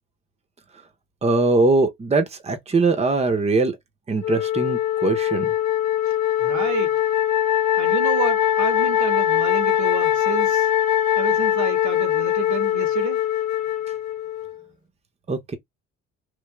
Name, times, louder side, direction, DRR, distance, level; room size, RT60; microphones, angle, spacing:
voice 1, 1.2-3.8 4.1-5.5 15.3-15.5, right 3 dB, 20° right, 0.6 m, -21 dB
Wind instrument woodwind instrument, 4.2-14.6, left 11 dB, 70° left, 0.6 m, -22 dB
voice 2, 6.4-6.9 7.8-10.7 11.2-13.2, right 7 dB, 70° right, 1.0 m, -30 dB
3.1 x 2.3 x 2.2 m
cardioid pair, 90°, 30 cm